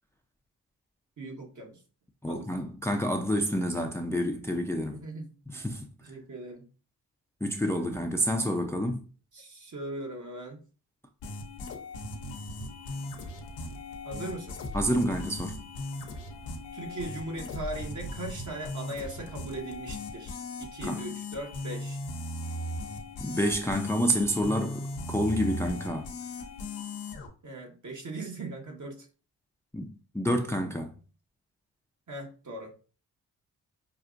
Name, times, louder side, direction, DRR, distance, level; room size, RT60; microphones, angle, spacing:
voice 1, 1.2-1.8 2.3-2.5 4.9-5.3 6.0-6.6 9.3-10.6 14.0-14.6 16.7-22.0 27.4-29.1 32.1-32.7, right 2 dB, 45° right, 1.5 m, -39 dB
voice 2, 2.2-5.0 5.5-5.9 7.4-9.0 14.7-15.6 20.8-21.0 23.2-26.1 29.7-30.9, equal, 5° left, 0.6 m, -28 dB
sound 1, 11.2-27.3, left 2 dB, 90° left, 0.8 m, -38 dB
5.6 x 2.4 x 2.5 m
supercardioid pair, 45°, 41 cm